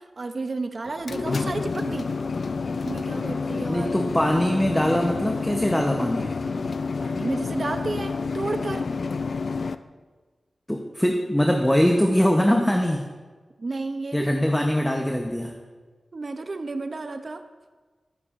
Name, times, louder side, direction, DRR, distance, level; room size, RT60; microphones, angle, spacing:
voice 1, 0.0-2.2 2.8-3.9 7.0-8.9 13.6-14.4 16.1-17.5, right 3 dB, 55° right, 9 dB, 0.5 m, -32 dB
sound 1, 0.8-9.8, left 4 dB, 70° left, 0.3 m, -29 dB
voice 2, 3.7-6.4 10.7-13.0 14.1-15.6, equal, 10° left, 2 dB, 0.8 m, -22 dB
11.5 x 9.4 x 2.5 m, 1.4 s
wide cardioid pair, 70°, 0 cm